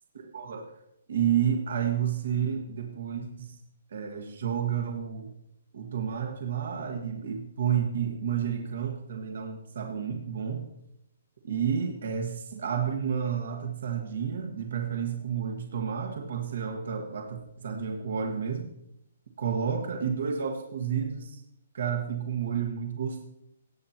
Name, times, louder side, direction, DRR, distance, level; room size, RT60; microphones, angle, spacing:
voice 1, 0.1-0.7 1.1-3.5 3.9-5.3 5.7-10.6 11.4-18.7 19.4-21.4 21.7-23.2, right 8 dB, 65° right, 3 dB, 1.5 m, -30 dB
17.5 x 7.8 x 2.9 m, 0.80 s
hypercardioid pair, 165°, 0 cm